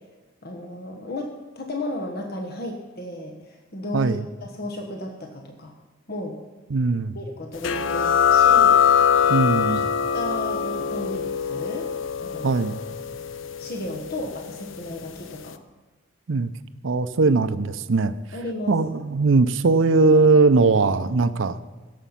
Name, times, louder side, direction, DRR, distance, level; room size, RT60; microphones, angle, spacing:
voice 1, 0.4-5.7 6.1-6.4 7.1-8.9 9.2-9.8 10.1-11.9 12.2-12.7 13.6-15.6 18.3-18.7, left 1 dB, 55° left, 2 dB, 1.2 m, -34 dB
voice 2, 6.7-7.2 9.3-9.8 12.4-12.8 16.3-16.5 16.8-18.1 18.7-21.6, right 3 dB, 70° right, 13 dB, 0.6 m, -19 dB
sound 1, 7.6-14.9, left 7 dB, 75° left, 0.6 m, -22 dB
16.5 x 7.2 x 5.8 m, 1.3 s
head